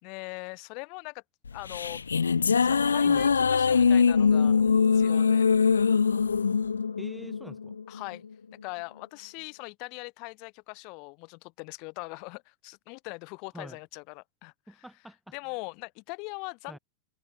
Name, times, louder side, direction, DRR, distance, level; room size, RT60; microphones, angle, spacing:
voice 1, 0.0-1.2 1.5-2.1 2.3-4.6 4.9-5.5 7.9-8.3 8.6-14.9 15.3-16.8, left 33 dB, 45° left, 4.1 m, -41 dB
sound 1, 1.5-8.0, left 5 dB, 75° left, 0.3 m, -23 dB
voice 2, 7.0-7.8 13.5-13.8 14.7-15.3 16.7-16.8, right 1 dB, ahead, 3.6 m, -45 dB
figure-of-eight pair, 90°, 0 cm